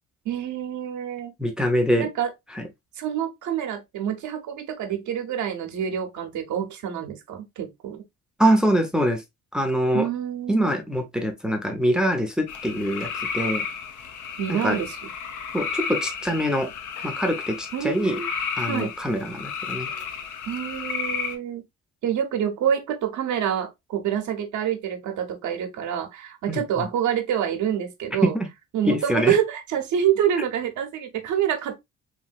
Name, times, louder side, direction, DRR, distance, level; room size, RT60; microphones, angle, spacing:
voice 1, 0.3-1.3 2.0-2.3 3.0-8.0 9.9-10.7 14.4-15.0 17.7-18.3 18.7-18.9 20.5-21.6 22.0-28.3 28.7-31.8, right 9 dB, 75° right, 0.8 m, -27 dB
voice 2, 1.4-2.1 2.6-2.7 8.4-9.2 9.5-10.1 10.5-13.1 13.3-13.6 14.5-14.8 15.5-16.7 17.0-18.2 18.6-19.9 26.5-26.9 28.2-28.5 28.8-29.3, equal, ahead, 0.6 m, -24 dB
sound 1, 12.5-21.4, left 6 dB, 80° left, 0.7 m, -32 dB
3.1 x 2.7 x 2.3 m
cardioid pair, 90°, 30 cm